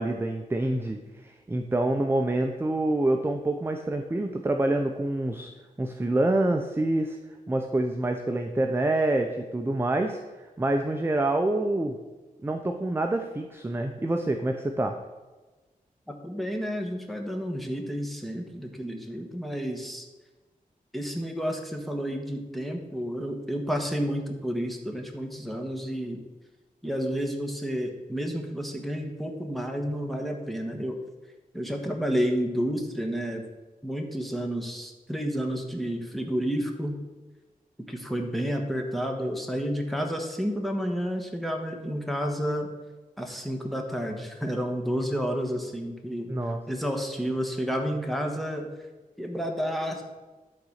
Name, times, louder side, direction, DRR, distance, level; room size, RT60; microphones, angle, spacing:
voice 1, 0.0-5.5 5.8-7.2 7.5-10.2 10.6-12.0 12.4-14.9 46.3-46.6, right 2 dB, 15° right, 4 dB, 0.6 m, -26 dB
voice 2, 16.1-20.1 20.9-26.2 26.8-31.0 31.5-33.4 33.8-37.0 37.9-42.7 43.2-46.3 46.7-48.7 49.2-50.0, equal, ahead, 2 dB, 1.3 m, -30 dB
11.5 x 4.0 x 6.4 m, 1.2 s
wide cardioid pair, 110°, 15 cm